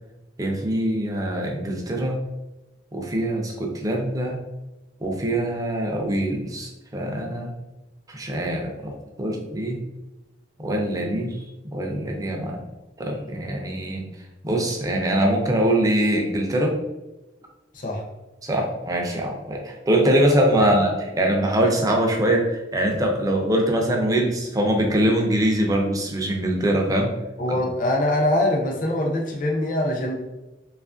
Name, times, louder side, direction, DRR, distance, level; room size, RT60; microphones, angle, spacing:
voice 1, 0.4-2.2 2.9-4.4 5.0-7.5 8.1-8.9 9.2-9.8 10.6-11.4 11.6-12.6 13.0-14.0 14.4-16.7 18.4-27.1 27.5-27.6, right 1 dB, 20° right, 1 dB, 0.4 m, -23 dB
voice 2, 27.4-30.1, left 1 dB, 45° left, 0 dB, 0.6 m, -23 dB
2.8 x 2.4 x 2.4 m, 1.1 s
head